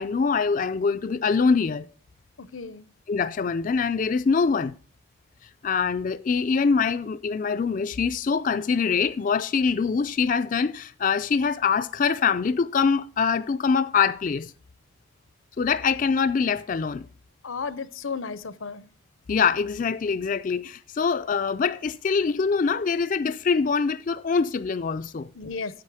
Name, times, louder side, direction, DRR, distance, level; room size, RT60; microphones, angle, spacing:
voice 1, 0.0-1.9 3.1-4.7 5.6-14.5 15.6-17.1 19.3-25.3, left 5 dB, 40° left, 0.4 m, -24 dB
voice 2, 2.4-2.9 17.4-18.9 25.3-25.8, left 5 dB, 80° left, 0.8 m, -34 dB
9.7 x 8.2 x 4.8 m
head